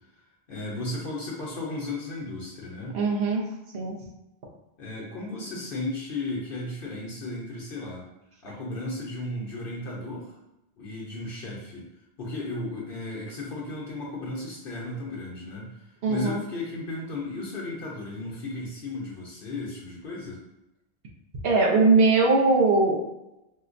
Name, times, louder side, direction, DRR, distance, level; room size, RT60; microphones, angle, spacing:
voice 1, 0.5-3.0 4.8-8.1 8.4-10.4 10.8-11.9 12.2-20.4, left 2 dB, 60° left, -3 dB, 0.8 m, -35 dB
voice 2, 2.9-3.4 3.7-4.0 16.0-16.4 21.4-23.0, right 3 dB, 65° right, -2 dB, 0.9 m, -20 dB
4.3 x 2.1 x 2.5 m, 0.91 s
omnidirectional pair, 1.1 m